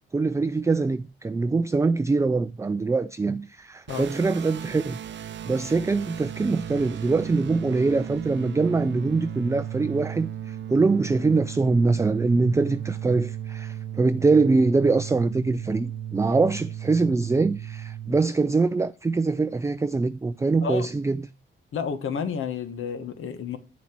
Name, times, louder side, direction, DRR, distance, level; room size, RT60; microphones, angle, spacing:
voice 1, 0.1-5.0 5.4-21.3, right 3 dB, 15° right, 0.4 m, -23 dB
sound 1, 3.9-18.2, right 10 dB, 60° right, 0.7 m, -35 dB
voice 2, 21.7-23.6, left 6 dB, 75° left, 1.3 m, -30 dB
8.5 x 7.3 x 4.5 m
cardioid pair, 105°, 21 cm